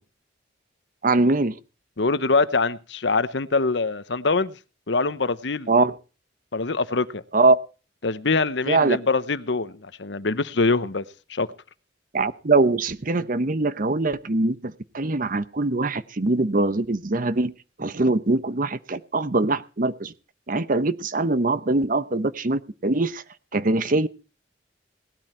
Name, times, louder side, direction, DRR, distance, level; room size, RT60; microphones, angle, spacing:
voice 1, 1.0-1.5 5.7-6.0 7.3-7.6 8.7-9.0 12.1-17.5 17.8-20.1 20.5-23.2 23.5-24.1, right 2 dB, 45° right, 14 dB, 0.9 m, -22 dB
voice 2, 2.0-4.5 4.9-5.7 6.5-7.2 8.0-11.0 11.3-11.5, left 3 dB, 70° left, 15 dB, 0.9 m, -24 dB
18.5 x 12.5 x 4.4 m, 0.34 s
head